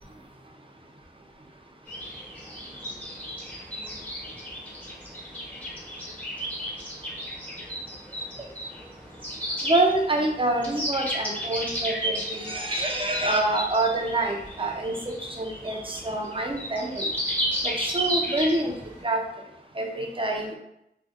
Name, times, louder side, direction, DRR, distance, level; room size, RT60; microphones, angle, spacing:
sound 1, 1.9-19.0, equal, 10° left, 0.7 m, -33 dB
voice 1, 9.6-17.1 17.6-18.7 19.0-19.2 19.8-20.6, right 2 dB, 30° right, 1 dB, 0.5 m, -26 dB
2.6 x 2.1 x 2.4 m, 0.81 s
wide cardioid pair, 50°, 18 cm